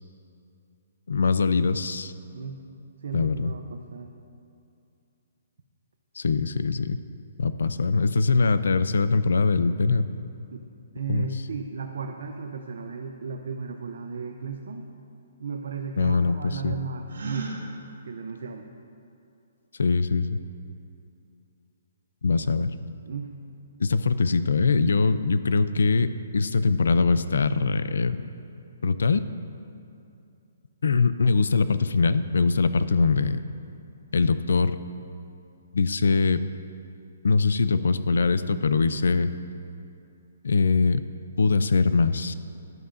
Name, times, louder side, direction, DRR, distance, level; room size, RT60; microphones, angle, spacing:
voice 1, 1.1-2.1 3.1-3.5 6.2-7.0 7.4-10.2 11.1-11.3 16.0-16.7 19.8-20.4 22.2-22.7 23.8-28.3 28.8-29.2 30.8-33.4 34.1-34.7 35.7-36.4 37.2-39.3 40.4-41.0 41.4-42.3, left 4 dB, 85° left, 13 dB, 0.4 m, -22 dB
voice 2, 3.0-4.1 10.5-10.6 10.9-14.9 15.4-17.5 18.0-18.7 23.1-23.3, right 5 dB, 65° right, 3 dB, 0.6 m, -35 dB
Gasp, 17.1-17.6, right 3 dB, 80° right, 1.6 m, -34 dB
12.5 x 11.0 x 2.6 m, 2.6 s
hypercardioid pair, 170°, 0 cm